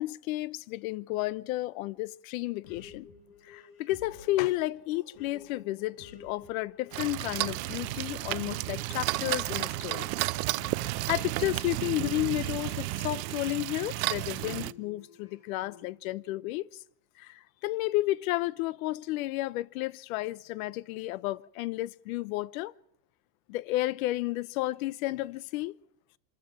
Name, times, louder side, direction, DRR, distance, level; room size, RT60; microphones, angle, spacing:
voice 1, 0.0-3.1 3.5-10.1 11.1-16.7 17.2-22.7 23.5-25.8, left 17 dB, 80° left, 0.8 m, -32 dB
sound 1, 2.6-13.7 14.3-15.9, left 5 dB, 60° left, 6.0 m, -52 dB
sound 2, 6.9-14.7, right 21 dB, 80° right, 0.7 m, -32 dB
26.0 x 14.0 x 7.4 m
supercardioid pair, 145°, 41 cm